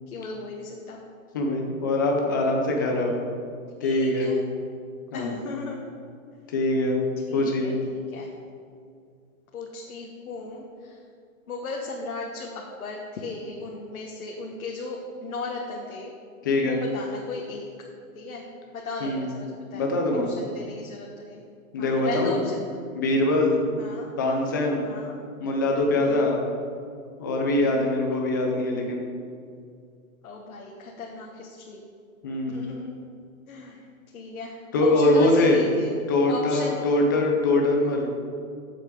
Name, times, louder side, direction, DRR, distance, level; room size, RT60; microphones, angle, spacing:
voice 1, 0.1-1.0 3.8-4.4 5.1-5.9 7.3-7.7 8.1-8.3 9.5-11.0 11.5-16.1 16.6-17.7 18.1-18.4 18.7-20.0 20.3-21.4 21.8-22.7 23.8-24.1 24.8-25.2 25.9-26.3 27.5-28.0 30.2-31.8 32.5-32.9 33.5-33.9 34.1-35.9 36.2-36.8, left 3 dB, 75° left, -1 dB, 1.5 m, -36 dB
voice 2, 1.3-3.2 3.8-4.3 5.1-5.4 6.5-7.0 7.3-7.7 16.4-16.8 19.0-19.3 19.7-20.3 21.7-22.4 22.9-23.6 24.2-24.8 25.4-26.4 27.2-29.1 32.2-32.6 34.7-35.6 36.1-38.1, left 2 dB, 15° left, 1 dB, 0.5 m, -23 dB
12.5 x 7.5 x 3.8 m, 2.3 s
hypercardioid pair, 165°, 42 cm